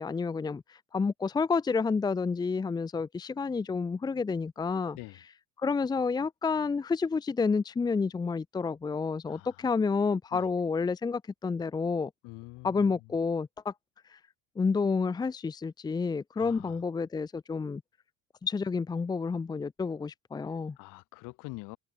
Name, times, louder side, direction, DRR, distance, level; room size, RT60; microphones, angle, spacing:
voice 1, 0.0-5.0 5.6-12.1 12.6-13.7 14.1-14.2 14.6-17.8 18.4-20.8, left 4 dB, 10° left, 0.9 m, -29 dB
voice 2, 9.3-9.6 10.3-10.5 12.2-12.9 16.4-16.8 20.4-21.8, left 24 dB, 65° left, 7.1 m, -45 dB
cardioid pair, 170°, 34 cm